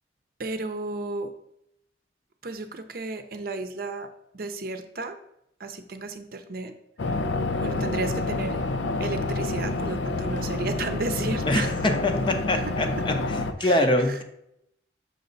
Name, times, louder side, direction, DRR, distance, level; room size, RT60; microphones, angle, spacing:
voice 1, 0.4-1.3 2.4-4.1 4.3-5.2 5.6-6.7 7.1-7.2 7.6-8.6 9.0-11.9 12.5-13.1 13.6-14.2, right 3 dB, 55° right, 8 dB, 0.6 m, -33 dB
sound 1, 7.0-13.5, left 2 dB, 85° left, 0.6 m, -28 dB
voice 2, 11.5-13.2 13.6-14.2, left 1 dB, 25° left, 6 dB, 0.6 m, -24 dB
6.5 x 5.4 x 3.9 m, 0.78 s
head